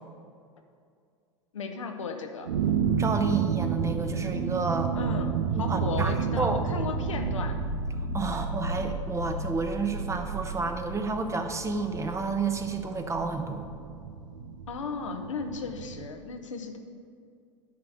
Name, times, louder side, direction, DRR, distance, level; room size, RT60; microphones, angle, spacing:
voice 1, 1.5-2.5 4.9-5.3 5.6-7.5 8.2-8.4 14.7-16.8, left 5 dB, 80° left, 4 dB, 0.9 m, -35 dB
sound 1, 2.4-16.1, right 5 dB, 75° right, 0.7 m, -31 dB
voice 2, 3.0-4.9 5.5-6.6 8.1-13.7, right 4 dB, 20° right, 6 dB, 0.9 m, -30 dB
10.5 x 4.7 x 6.4 m, 2.3 s
figure-of-eight pair, 80°, 16 cm